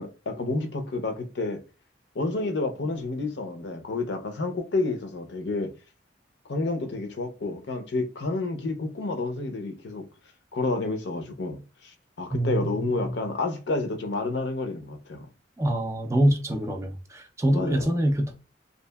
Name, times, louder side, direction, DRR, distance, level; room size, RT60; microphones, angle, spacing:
voice 1, 0.0-1.6 2.1-5.7 6.5-10.1 10.5-15.3 17.5-17.9, left 3 dB, 65° left, 0.6 m, -30 dB
voice 2, 12.3-13.1 15.6-18.3, right 1 dB, 15° right, 0.4 m, -25 dB
2.7 x 2.5 x 2.3 m
head